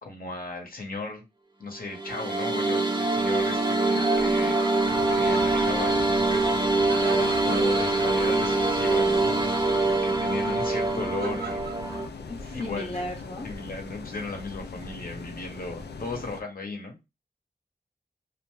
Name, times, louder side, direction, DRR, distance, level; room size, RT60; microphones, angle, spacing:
voice 1, 0.0-1.2 1.6-4.6 5.1-6.5 7.4-11.6 12.5-13.0 13.4-17.0, left 3 dB, 60° left, 2 dB, 0.9 m, -36 dB
sound 1, 1.9-12.1, right 2 dB, 25° right, 0.6 m, -24 dB
Laughter, 3.4-13.4, right 4 dB, 70° right, 0.7 m, -42 dB
voice 2, 3.9-4.5 6.9-7.3 7.7-7.8 12.4-13.5, left 2 dB, 35° left, -2 dB, 0.7 m, -35 dB
sound 2, 4.8-16.4, left 4 dB, 85° left, 0.4 m, -40 dB
2.5 x 2.2 x 3.0 m, 0.23 s
wide cardioid pair, 65°, 17 cm